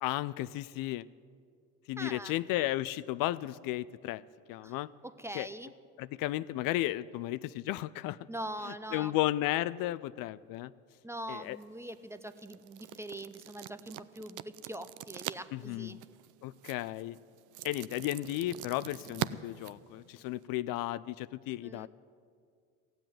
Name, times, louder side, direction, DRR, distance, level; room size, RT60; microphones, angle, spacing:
voice 1, 0.0-1.1 1.9-4.2 4.5-4.9 5.3-5.5 6.0-8.2 8.9-10.7 11.3-11.6 15.5-15.9 16.4-17.2 17.6-21.9, left 15 dB, 60° left, 17 dB, 0.5 m, -34 dB
voice 2, 2.0-2.4 4.6-4.8 5.0-5.7 8.3-9.2 11.0-16.0 21.6-21.9, right 1 dB, 5° right, 12 dB, 0.5 m, -43 dB
sound 1, 11.4-20.5, right 14 dB, 55° right, 0.5 m, -44 dB
15.0 x 7.8 x 9.1 m, 2.2 s
hypercardioid pair, 70°, 38 cm